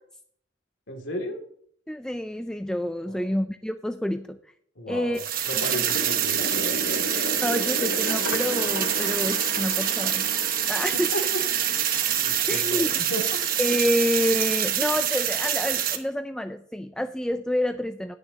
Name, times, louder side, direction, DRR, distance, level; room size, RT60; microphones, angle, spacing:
voice 1, 0.9-1.4 3.1-3.2 4.8-5.2 5.5-7.0 10.9-11.4 12.2-12.8 13.1-13.4, equal, 70° left, 2 dB, 2.3 m, -33 dB
voice 2, 1.9-4.4 4.9-5.2 7.4-10.3 10.7-11.1 12.5-13.0 13.6-18.2, equal, 5° left, 8 dB, 0.3 m, -28 dB
sound 1, 5.1-16.0, right 9 dB, 50° right, 1.1 m, -26 dB
sound 2, 5.6-12.2, left 2 dB, 55° left, 0.7 m, -35 dB
20.0 x 6.9 x 2.8 m, 0.64 s
head